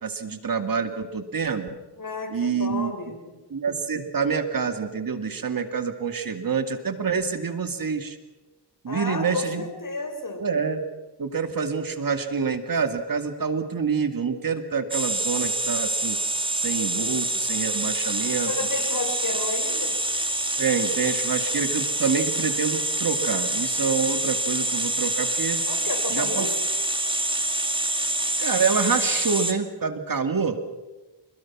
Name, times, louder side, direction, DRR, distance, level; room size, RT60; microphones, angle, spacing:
voice 1, 0.0-1.7 2.3-2.9 3.5-8.2 8.8-9.6 10.4-10.8 11.2-16.2 16.5-18.5 20.6-25.6 26.1-26.5 28.4-30.6, right 5 dB, 50° right, 8 dB, 2.3 m, -27 dB
voice 2, 2.0-3.4 8.9-10.4 18.4-20.0 25.7-26.6, left 3 dB, 50° left, 5 dB, 5.3 m, -32 dB
sound 1, 14.9-29.5, right 1 dB, 10° right, 2.3 m, -26 dB
27.0 x 21.0 x 6.1 m, 1.1 s
cardioid pair, 65°, 42 cm